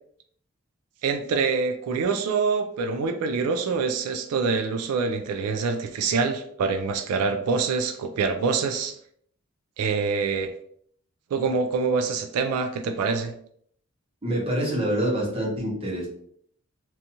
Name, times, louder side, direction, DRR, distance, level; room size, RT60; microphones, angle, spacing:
voice 1, 1.0-9.0 9.8-10.5 11.3-13.3, right 5 dB, 90° right, 8 dB, 0.3 m, -25 dB
voice 2, 14.2-16.1, right 1 dB, 25° right, -3 dB, 0.8 m, -26 dB
2.6 x 2.3 x 2.7 m, 0.65 s
head